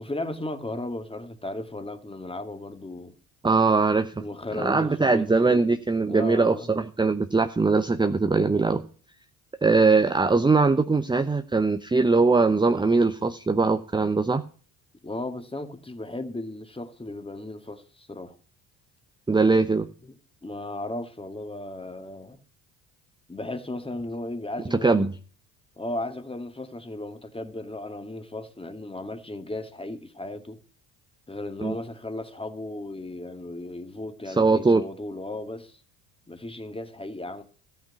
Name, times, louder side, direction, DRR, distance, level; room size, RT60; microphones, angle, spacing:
voice 1, 0.0-3.1 4.2-5.6 6.1-6.8 15.0-18.4 20.0-20.1 20.4-22.4 23.3-25.1 25.8-30.6 31.3-35.8 36.3-37.4, left 2 dB, 15° left, 1.9 m, -35 dB
voice 2, 3.4-4.2 4.6-8.8 9.6-14.4 19.3-19.9 24.7-25.1 31.6-31.8 34.3-34.8, right 3 dB, 10° right, 0.8 m, -21 dB
14.0 x 5.8 x 9.2 m
hypercardioid pair, 60°, 43 cm